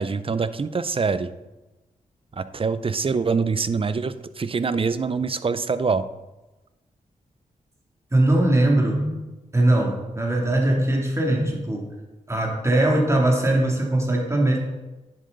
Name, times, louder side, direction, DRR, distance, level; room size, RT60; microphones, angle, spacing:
voice 1, 0.0-1.3 2.3-6.0, right 5 dB, 40° right, 14 dB, 0.6 m, -24 dB
voice 2, 8.1-9.2 9.5-11.9 12.3-14.6, right 1 dB, 20° right, -1 dB, 2.9 m, -20 dB
10.0 x 7.6 x 4.0 m, 1.1 s
cardioid pair, 50°, 14 cm